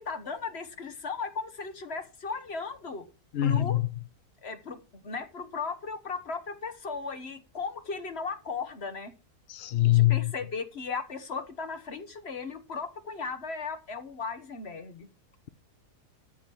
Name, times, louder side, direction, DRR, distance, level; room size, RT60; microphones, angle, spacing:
voice 1, 0.0-3.0 3.4-3.8 4.4-9.1 9.8-15.1, left 4 dB, 45° left, 1.3 m, -36 dB
voice 2, 3.3-3.8 9.5-10.3, left 14 dB, 65° left, 0.6 m, -23 dB
13.5 x 5.1 x 5.9 m
omnidirectional pair, 1.7 m